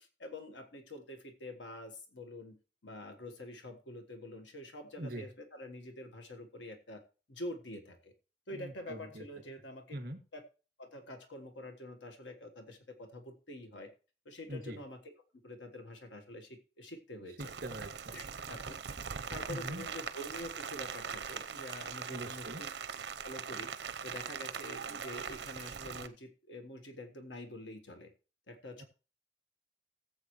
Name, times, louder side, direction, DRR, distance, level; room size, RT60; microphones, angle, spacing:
voice 1, 0.0-2.6 2.8-7.0 7.3-8.1 8.5-10.0 10.3-10.4 10.8-13.9 14.2-15.1 15.4-17.5 18.1-18.8 19.3-23.7 24.0-28.1 28.5-28.8, left 1 dB, 90° left, 6 dB, 1.4 m, -46 dB
voice 2, 8.5-9.2 9.9-10.2 14.5-14.8 17.4-18.2 19.5-19.9 22.1-22.6 28.8-28.9, right 1 dB, 50° right, 6 dB, 2.2 m, -42 dB
Rain, 17.4-26.1, right 6 dB, 70° right, 0.7 m, -41 dB
17.0 x 7.7 x 3.1 m, 0.35 s
head